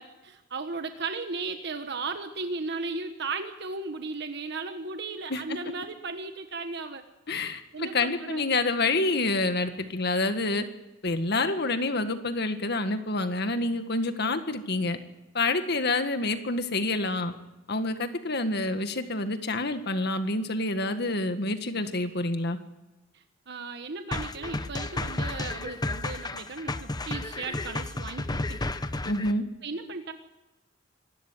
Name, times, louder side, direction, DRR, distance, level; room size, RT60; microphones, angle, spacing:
voice 1, 0.0-7.1 7.7-8.4 23.1-28.7 29.6-30.1, right 3 dB, 60° right, 7 dB, 1.4 m, -36 dB
voice 2, 7.3-10.7 11.0-15.0 15.3-17.3 17.7-22.6 29.0-29.5, left 2 dB, 60° left, 8 dB, 1.8 m, -28 dB
sound 1, 24.1-29.3, left 2 dB, 20° left, 0.9 m, -32 dB
25.5 x 13.0 x 9.3 m, 1.1 s
head